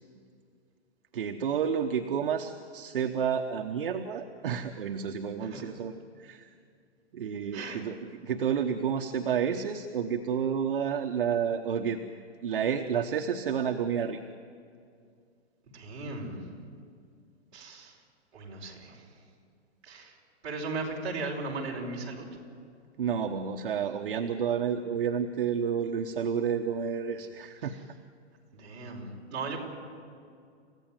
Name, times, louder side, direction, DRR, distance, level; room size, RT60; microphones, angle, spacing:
voice 1, 1.1-6.5 7.1-8.0 8.2-12.0 12.4-14.2 23.0-27.7, right 7 dB, 50° right, 4 dB, 1.1 m, -30 dB
voice 2, 5.4-5.7 7.5-7.8 15.7-16.5 17.5-18.0 18.3-19.1 19.8-20.2 20.4-22.3 27.6-27.8 28.5-29.6, right 3 dB, 25° right, -4 dB, 5.0 m, -37 dB
30.0 x 15.5 x 9.1 m, 2.3 s
hypercardioid pair, 180°, 34 cm